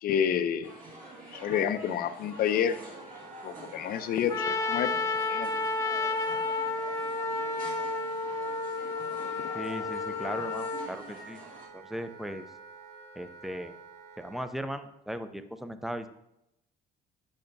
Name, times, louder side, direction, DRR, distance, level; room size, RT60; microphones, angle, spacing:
voice 1, 0.0-0.7 1.3-2.8 3.4-4.9 5.3-5.5, left 8 dB, 60° left, 11 dB, 0.5 m, -29 dB
sound 1, 0.6-11.7, right 1 dB, 55° right, 1.9 m, -47 dB
Wind instrument woodwind instrument, 2.7-14.5, right 5 dB, 80° right, 2.1 m, -50 dB
Trumpet, 4.3-10.9, left 3 dB, 20° left, 0.9 m, -31 dB
voice 2, 9.5-11.4 11.7-12.4 13.2-13.8 14.2-16.1, equal, ahead, 10 dB, 0.5 m, -37 dB
8.8 x 5.7 x 2.6 m, 0.83 s
cardioid pair, 110°, 17 cm